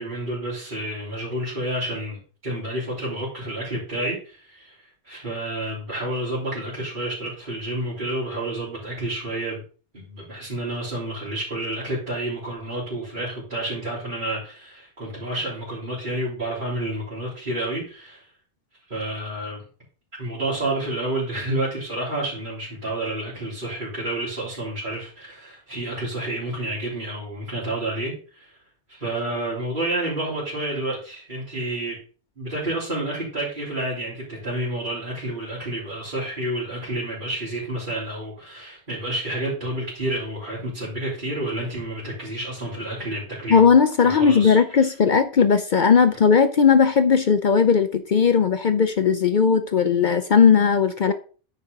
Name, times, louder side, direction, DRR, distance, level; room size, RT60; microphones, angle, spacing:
voice 1, 0.0-4.8 5.0-9.6 9.9-18.3 18.9-19.6 20.2-28.5 28.9-32.0 32.4-43.7 44.0-44.9, right 1 dB, 45° right, 3.4 m, -29 dB
voice 2, 43.5-51.1, left 6 dB, 55° left, 0.6 m, -17 dB
9.6 x 4.6 x 5.2 m
omnidirectional pair, 1.2 m